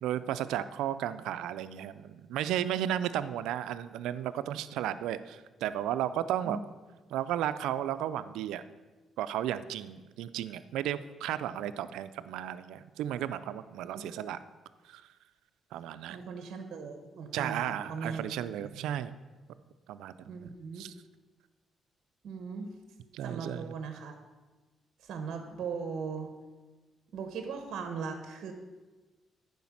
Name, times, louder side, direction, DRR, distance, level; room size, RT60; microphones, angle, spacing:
voice 1, 0.0-6.6 7.1-8.6 9.2-14.4 14.8-15.0 15.7-16.2 17.3-19.1 19.9-20.1 20.4-20.9 23.1-23.7, right 11 dB, 90° right, 13 dB, 0.4 m, -34 dB
voice 2, 16.1-18.2 18.6-18.9 20.3-20.8 22.2-22.7 23.2-24.2 25.0-26.3 27.1-28.5, right 5 dB, 65° right, 6 dB, 1.0 m, -39 dB
9.3 x 5.1 x 7.2 m, 1.3 s
cardioid pair, 90°, 0 cm